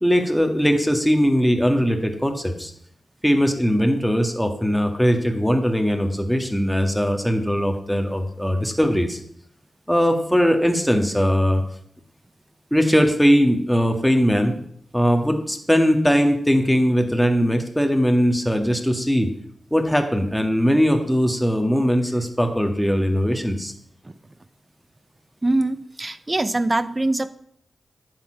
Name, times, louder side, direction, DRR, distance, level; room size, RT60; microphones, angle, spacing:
voice 1, 0.0-2.7 3.2-9.2 9.9-11.6 12.7-14.6 14.9-19.3 19.7-23.7, equal, ahead, 4 dB, 2.0 m, -20 dB
voice 2, 25.4-27.3, right 2 dB, 30° right, 14 dB, 0.8 m, -23 dB
10.5 x 7.4 x 5.8 m, 0.65 s
cardioid pair, 45°, 0 cm